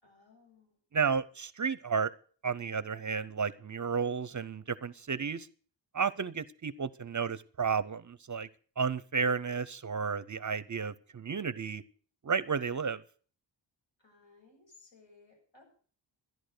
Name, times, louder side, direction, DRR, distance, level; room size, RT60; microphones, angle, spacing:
voice 1, 0.0-0.8 14.0-15.6, left 4 dB, 75° left, 1 dB, 7.4 m, -60 dB
voice 2, 0.9-2.1 2.4-5.5 5.9-8.5 8.8-11.8 12.2-13.0, right 5 dB, 40° right, 17 dB, 0.5 m, -32 dB
14.0 x 11.0 x 6.5 m, 0.43 s
wide cardioid pair, 165°, 45 cm